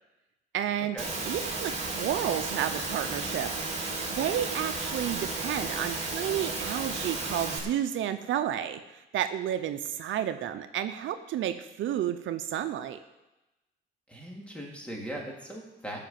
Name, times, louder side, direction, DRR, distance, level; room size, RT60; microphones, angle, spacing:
voice 1, 0.5-3.5 4.1-13.0, right 10 dB, 75° right, 9 dB, 0.8 m, -31 dB
Engine / Mechanisms, 1.0-7.6, right 3 dB, 35° right, 3.4 m, -33 dB
voice 2, 14.1-16.0, right 1 dB, 5° left, -2 dB, 3.6 m, -39 dB
15.0 x 6.0 x 7.6 m, 1.0 s
cardioid pair, 90°, 20 cm